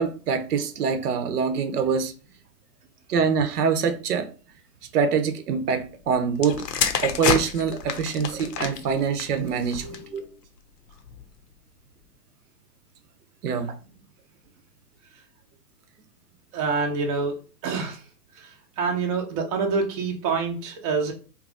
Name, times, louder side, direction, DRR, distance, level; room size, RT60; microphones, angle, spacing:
voice 1, 0.0-2.1 3.1-4.3 4.9-6.6 7.0-10.2 13.4-13.8, right 6 dB, 65° right, 0.7 m, -24 dB
sound 1, 6.4-10.2 11.0-11.3, left 7 dB, 70° left, 0.8 m, -28 dB
voice 2, 9.8-10.3 16.5-17.3 17.6-18.0 18.4-18.5 18.8-21.1, right 4 dB, 25° right, 0.5 m, -26 dB
3.0 x 2.3 x 3.7 m
hypercardioid pair, 130°, 50 cm